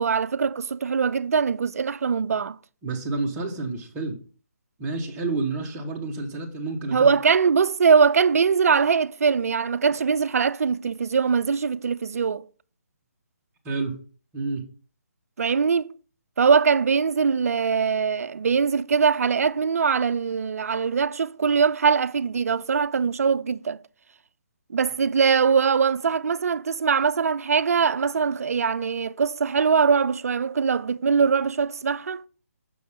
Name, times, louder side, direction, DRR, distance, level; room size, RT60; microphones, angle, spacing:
voice 1, 0.0-2.6 6.9-12.4 15.4-15.9 16.4-23.8 24.7-32.2, right 6 dB, 65° right, 0.4 m, -22 dB
voice 2, 2.8-4.1 4.8-7.1 13.6-14.0 14.3-14.6, right 3 dB, 15° right, 1.2 m, -29 dB
6.2 x 6.1 x 3.6 m
hypercardioid pair, 150°, 9 cm